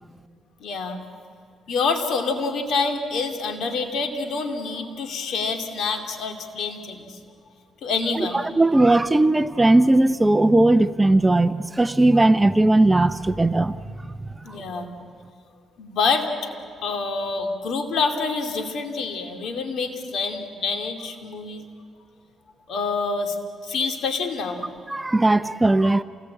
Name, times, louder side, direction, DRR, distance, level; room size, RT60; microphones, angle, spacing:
voice 1, 0.6-1.0 1.7-7.2 7.8-8.4 14.4-14.9 15.8-16.3 16.8-21.6 22.7-23.4 23.6-24.6, left 4 dB, 70° left, 2.7 m, -27 dB
voice 2, 8.1-13.8 14.2-14.3 24.9-26.0, right 2 dB, 15° right, 0.6 m, -18 dB
28.0 x 19.5 x 8.7 m
cardioid pair, 90°, 0 cm